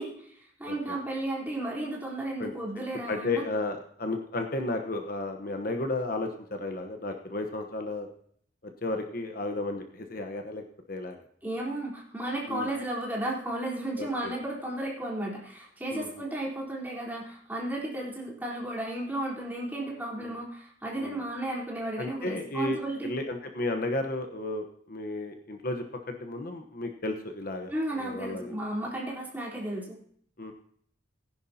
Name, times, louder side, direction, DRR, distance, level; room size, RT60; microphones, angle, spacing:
voice 1, 0.0-3.4 11.4-23.1 27.7-30.0, right 1 dB, 10° right, -4 dB, 3.8 m, -34 dB
voice 2, 3.1-8.1 8.8-11.2 12.5-12.7 14.0-14.3 15.9-16.1 20.2-20.3 21.0-21.2 22.0-28.6 30.4-30.5, left 2 dB, 50° left, 5 dB, 1.0 m, -33 dB
19.0 x 10.5 x 2.8 m, 0.62 s
head